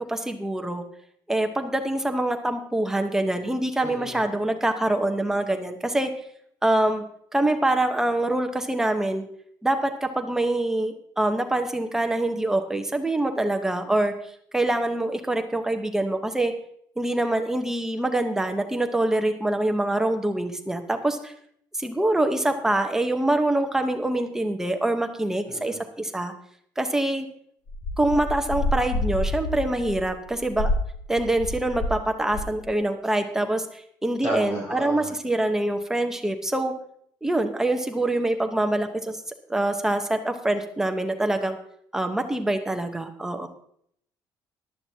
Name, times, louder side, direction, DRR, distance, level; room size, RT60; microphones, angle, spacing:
voice 1, 0.1-0.8 1.3-6.1 6.6-7.0 7.3-9.3 9.6-14.1 14.5-16.5 17.0-21.3 21.7-26.3 26.8-27.3 28.0-30.7 31.1-36.7 37.2-39.2 39.5-41.6 41.9-43.5, right 1 dB, 5° right, 5 dB, 0.9 m, -25 dB
voice 2, 3.8-4.2 25.5-25.8 34.2-35.1, right 1 dB, 35° left, -3 dB, 4.4 m, -33 dB
sound 1, 27.7-32.0 32.3-32.7, left 1 dB, 50° left, 1.3 m, -28 dB
14.5 x 12.0 x 2.8 m, 0.68 s
cardioid pair, 170°, 8 cm